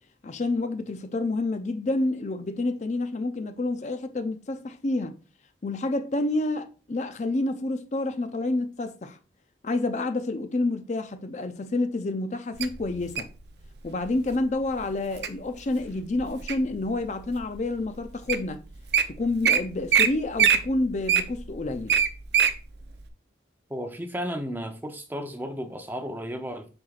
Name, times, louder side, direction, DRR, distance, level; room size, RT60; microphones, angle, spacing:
voice 1, 0.2-5.2 5.6-9.2 9.6-13.3 13.8-18.6 19.1-22.0, left 2 dB, 40° left, 0.4 m, -28 dB
Wild animals, 12.6-13.4 14.1-14.3 14.8-15.3 15.8-16.8 17.3-17.4 18.0-18.1 18.3-18.5 18.7-19.0 19.4-19.6 19.9-20.1 20.4-22.5 23.0-23.1, right 8 dB, 65° right, 0.7 m, -22 dB
voice 2, 23.7-26.7, equal, 10° right, 0.7 m, -33 dB
7.7 x 5.6 x 2.4 m
head